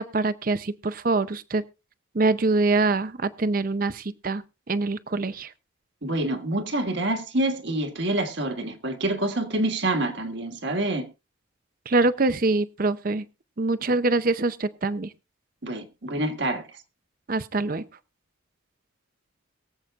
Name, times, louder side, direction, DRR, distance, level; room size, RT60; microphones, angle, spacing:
voice 1, 0.0-1.6 2.1-5.5 11.9-13.3 13.6-15.1 17.3-17.8, right 3 dB, 45° right, 0.6 m, -24 dB
voice 2, 6.0-11.1 15.6-16.6, right 1 dB, 60° right, 1.6 m, -27 dB
22.5 x 7.9 x 2.4 m
head